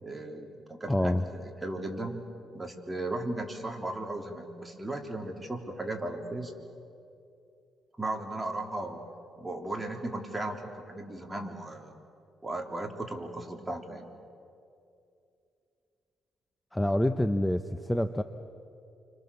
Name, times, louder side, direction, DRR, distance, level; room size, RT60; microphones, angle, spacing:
voice 1, 0.0-2.3 2.5-6.5 8.0-9.1 9.4-12.0 12.4-14.1, right 2 dB, 15° right, 2 dB, 3.5 m, -36 dB
voice 2, 0.9-1.2 16.7-18.2, left 1 dB, 5° left, 9 dB, 0.9 m, -27 dB
29.0 x 25.5 x 7.1 m, 2.6 s
cardioid pair, 90°, 0 cm